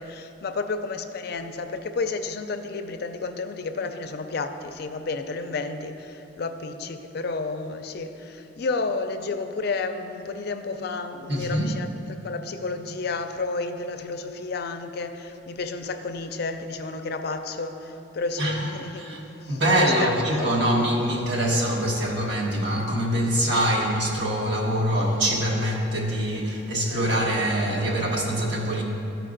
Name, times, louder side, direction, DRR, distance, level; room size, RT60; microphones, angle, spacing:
voice 1, 0.0-20.7 26.9-27.3, left 3 dB, 55° left, 8 dB, 0.4 m, -31 dB
voice 2, 11.3-11.7 18.4-19.2 19.5-28.8, equal, 65° right, -2 dB, 1.3 m, -24 dB
13.5 x 4.6 x 3.8 m, 2.9 s
head